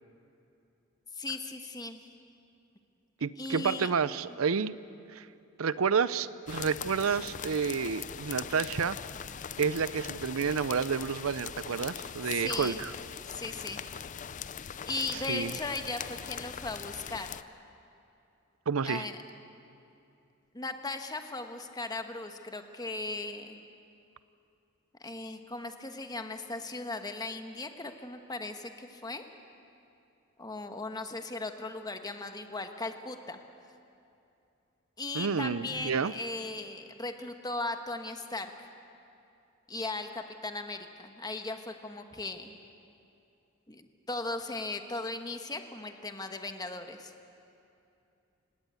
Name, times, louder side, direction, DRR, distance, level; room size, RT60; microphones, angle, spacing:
voice 1, 1.1-2.0 3.4-3.9 4.3-4.4 12.2-12.8 13.3-13.8 14.8-17.3 18.8-19.2 20.5-23.6 25.0-29.2 30.4-33.4 35.0-38.7 39.7-42.5 43.7-47.1, left 3 dB, 20° left, 6 dB, 1.3 m, -37 dB
voice 2, 3.2-4.7 5.1-5.3 5.6-9.0 9.6-12.9 15.3-15.5 18.7-19.1 35.1-36.1, right 6 dB, 90° right, 16 dB, 0.6 m, -30 dB
sound 1, 6.5-17.4, left 8 dB, 35° left, 0.5 m, -41 dB
29.0 x 17.5 x 8.3 m, 2.7 s
head